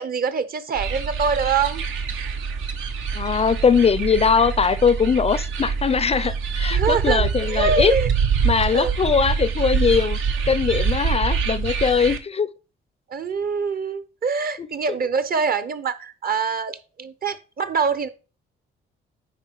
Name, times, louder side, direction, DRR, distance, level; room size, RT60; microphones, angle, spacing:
voice 1, 0.0-1.8 6.7-8.1 8.7-8.9 13.1-18.1, right 5 dB, 50° right, 1.0 m, -24 dB
sound 1, 0.7-12.2, right 6 dB, 80° right, 1.2 m, -25 dB
voice 2, 3.1-7.9 8.4-10.2 10.5-12.5 14.6-14.7, left 6 dB, 30° left, 0.4 m, -20 dB
9.9 x 3.9 x 4.6 m
cardioid pair, 90°, 20 cm